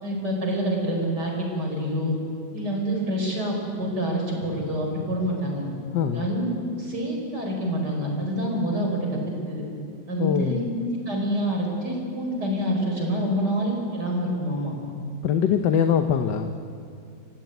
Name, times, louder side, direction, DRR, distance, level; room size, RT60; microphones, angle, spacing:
voice 1, 0.0-2.2 2.5-5.6 6.1-9.7 10.1-14.7, equal, 65° right, 0 dB, 5.8 m, -27 dB
voice 2, 5.9-6.3 10.2-10.7 15.2-16.7, left 8 dB, 75° left, 7 dB, 1.6 m, -23 dB
29.0 x 15.5 x 9.3 m, 2.4 s
omnidirectional pair, 2.0 m